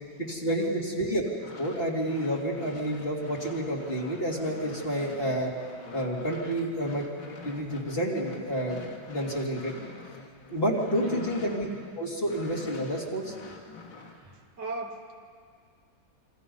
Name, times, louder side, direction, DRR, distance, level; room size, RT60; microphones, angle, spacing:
voice 1, 0.2-1.2 1.6-5.5 5.9-7.0 7.4-8.8 9.0-9.7 10.5-11.7 12.0-13.3, equal, 30° left, -2 dB, 3.1 m, -29 dB
sound 1, 1.3-11.9 12.2-14.2, left 4 dB, 90° left, 2.8 m, -46 dB
voice 2, 14.1-15.1, right 4 dB, 60° right, 2 dB, 2.2 m, -39 dB
28.0 x 25.0 x 5.5 m, 2.1 s
omnidirectional pair, 2.1 m